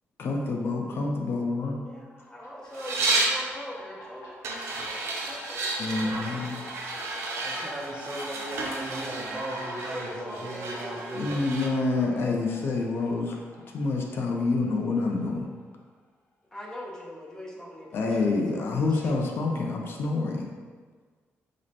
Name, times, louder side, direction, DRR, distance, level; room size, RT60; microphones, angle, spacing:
voice 1, 0.2-1.8 5.8-6.6 11.1-13.4 13.7-15.5 17.9-20.5, left 3 dB, 55° left, 0 dB, 0.4 m, -27 dB
voice 2, 1.6-6.5 6.9-7.7 9.6-12.4 16.5-19.2, left 1 dB, 15° left, -4 dB, 0.7 m, -43 dB
sound 1, 2.2-15.6, left 1 dB, 80° left, 0.8 m, -47 dB
sound 2, 2.7-3.4 4.4-11.7, right 2 dB, 75° right, 0.5 m, -32 dB
voice 3, 7.4-11.3, right 1 dB, 25° right, -2 dB, 0.6 m, -37 dB
5.0 x 2.1 x 2.8 m, 1.5 s
cardioid pair, 140°, 5 cm